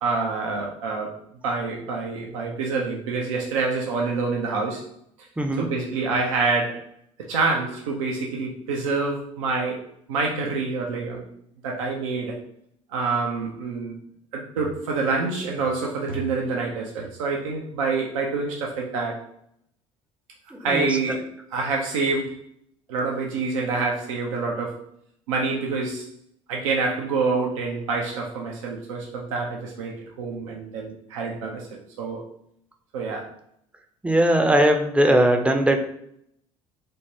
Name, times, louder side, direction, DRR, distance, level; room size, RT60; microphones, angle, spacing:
voice 1, 0.0-1.1 1.4-4.8 5.6-6.8 7.2-9.8 10.1-11.2 11.6-12.4 12.9-14.0 14.3-19.2 20.6-22.4 22.9-24.8 25.3-26.1 26.5-32.2 32.9-33.3, right 4 dB, 80° right, -1 dB, 0.4 m, -27 dB
voice 2, 5.4-5.7 20.5-21.2 34.0-35.9, right 1 dB, 5° right, 4 dB, 0.4 m, -20 dB
3.3 x 2.1 x 2.6 m, 0.72 s
hypercardioid pair, 60°, 17 cm